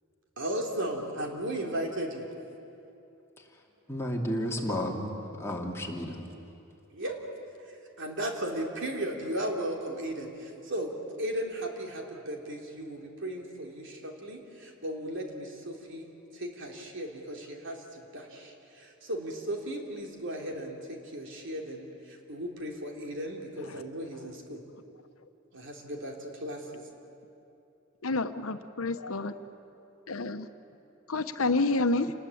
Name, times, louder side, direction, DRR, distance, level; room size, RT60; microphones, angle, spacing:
voice 1, 0.4-2.3 6.9-7.2 7.7-24.6 25.5-26.8, right 1 dB, 60° right, 1 dB, 3.4 m, -36 dB
voice 2, 3.9-6.2, equal, 15° left, -1 dB, 2.7 m, -32 dB
voice 3, 28.0-29.3 30.1-30.5 31.1-32.1, left 3 dB, 80° left, 9 dB, 1.1 m, -29 dB
28.5 x 20.0 x 8.6 m, 2.9 s
head